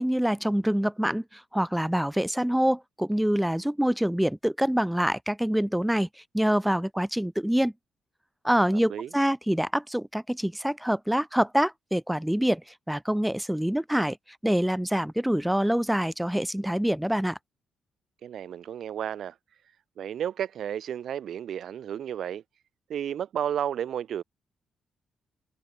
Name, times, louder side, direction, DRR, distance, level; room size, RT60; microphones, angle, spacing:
voice 1, 0.0-6.1 6.3-7.7 8.4-12.6 12.9-14.2 14.4-17.4, equal, 5° right, 2.1 m, -25 dB
voice 2, 18.2-19.4 20.0-22.4 22.9-24.2, right 9 dB, 65° right, 7.2 m, -32 dB
cardioid pair, 140°, 0 cm